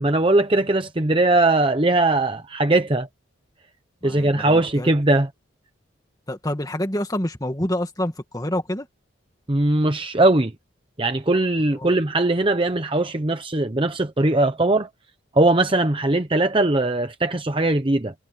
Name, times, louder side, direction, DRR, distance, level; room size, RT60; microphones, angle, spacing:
voice 1, 0.0-3.1 4.0-5.3 9.5-10.5 11.0-14.9 15.3-18.1, right 2 dB, 25° right, 0.9 m, -20 dB
voice 2, 4.0-4.9 6.3-8.9 11.7-11.9, left 1 dB, 20° left, 2.2 m, -27 dB
head